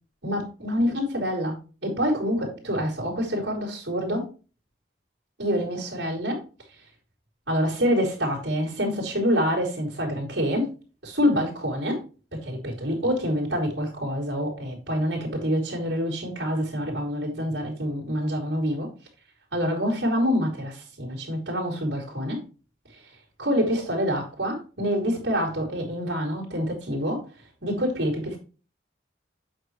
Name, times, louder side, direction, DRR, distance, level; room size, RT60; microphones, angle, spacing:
voice 1, 0.2-4.3 5.4-6.4 6.7-6.8 7.5-10.7 11.0-12.0 12.3-18.9 19.5-22.4 22.9-23.1 23.4-27.2 27.6-28.4, equal, 75° right, 3.6 m, -26 dB
8.3 x 6.4 x 3.3 m
head